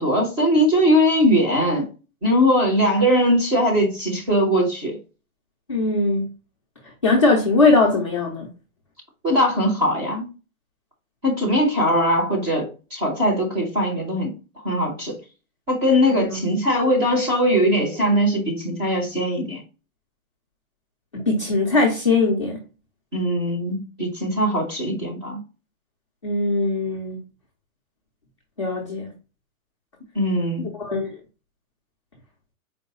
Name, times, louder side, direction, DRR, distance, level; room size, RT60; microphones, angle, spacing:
voice 1, 0.0-1.9 2.2-5.0 9.2-10.3 11.2-14.3 14.6-15.2 15.7-19.6 23.1-25.4 30.1-30.7, equal, 10° right, 0.8 m, -20 dB
voice 2, 5.7-6.3 7.0-8.5 16.1-16.4 21.1-22.6 26.2-27.2 28.6-29.1 30.8-31.2, left 3 dB, 25° left, 0.4 m, -20 dB
4.4 x 2.1 x 4.0 m
hypercardioid pair, 170°, 42 cm